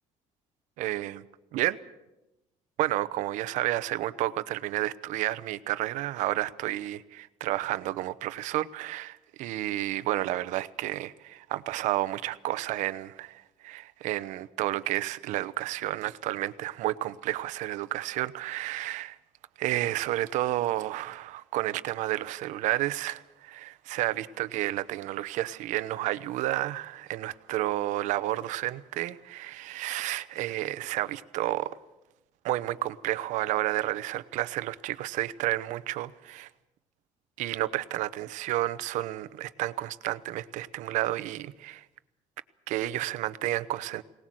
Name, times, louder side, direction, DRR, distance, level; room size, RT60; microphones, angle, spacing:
voice 1, 0.8-1.2 1.5-1.8 2.8-19.2 19.6-31.7 32.4-36.5 37.4-41.8 42.7-44.0, right 15 dB, 80° right, 14 dB, 0.9 m, -31 dB
23.0 x 19.0 x 7.7 m, 0.95 s
cardioid pair, 175°, 13 cm